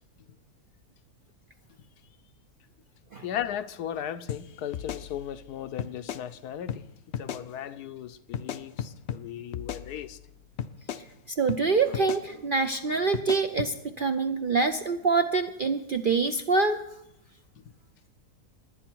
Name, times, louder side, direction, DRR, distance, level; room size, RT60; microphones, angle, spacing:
voice 1, 3.2-6.8 7.2-10.2, left 10 dB, 85° left, 1.3 m, -36 dB
sound 1, 4.3-4.4 4.7-5.5 5.8-6.2 6.7-6.8 7.1-7.4 8.3-9.2 9.5-10.3 10.6-11.0 11.5-11.6 11.9-12.2 13.1-13.7, left 8 dB, 60° left, 0.7 m, -35 dB
voice 2, 11.4-16.8, right 4 dB, 60° right, 0.5 m, -25 dB
20.0 x 10.5 x 4.6 m
omnidirectional pair, 1.6 m